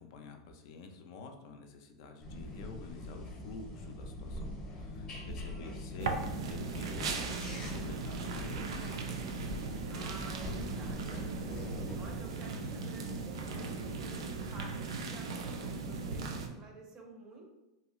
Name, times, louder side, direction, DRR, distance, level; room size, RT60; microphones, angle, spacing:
voice 1, 0.0-9.0, left 4 dB, 60° left, 4 dB, 0.4 m, -49 dB
sound 1, 2.2-12.2, left 1 dB, 25° left, 0.7 m, -43 dB
voice 2, 5.4-6.5 9.9-17.5, right 2 dB, 25° right, 2 dB, 0.5 m, -52 dB
sound 2, 6.0-16.5, right 4 dB, 85° right, 0.4 m, -38 dB
2.7 x 2.3 x 2.9 m, 1.0 s
supercardioid pair, 145°, 3 cm